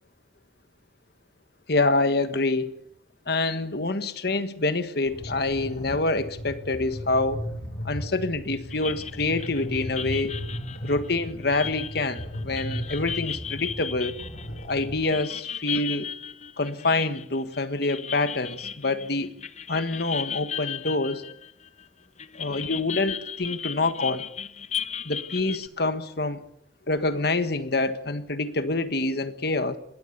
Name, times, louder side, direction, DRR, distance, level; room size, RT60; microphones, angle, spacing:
voice 1, 1.7-2.8 3.3-7.4 7.8-10.4 10.8-14.2 14.7-16.1 16.6-19.3 19.7-21.2 22.4-24.2 25.0-26.4 26.9-29.8, left 2 dB, 60° left, 1.5 m, -26 dB
sound 1, 5.1-15.1, equal, 75° left, 7.5 m, -36 dB
sound 2, 8.7-21.8 22.2-25.7, left 8 dB, 40° left, 0.8 m, -36 dB
21.0 x 17.0 x 8.2 m
head